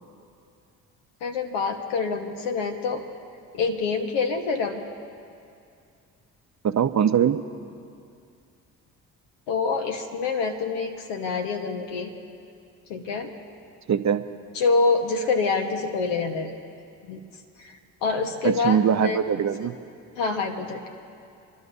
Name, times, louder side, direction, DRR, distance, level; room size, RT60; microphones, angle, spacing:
voice 1, 1.2-3.0 3.5-4.8 9.5-12.1 12.9-13.3 14.5-16.5 17.1-17.2 17.6-17.7 18.0-19.2 20.2-20.8, left 4 dB, 75° left, 4 dB, 1.5 m, -26 dB
voice 2, 6.6-7.4 13.9-14.2 18.4-19.7, right 8 dB, 40° right, 10 dB, 0.8 m, -22 dB
27.5 x 11.5 x 2.8 m, 2.4 s
hypercardioid pair, 50°, 42 cm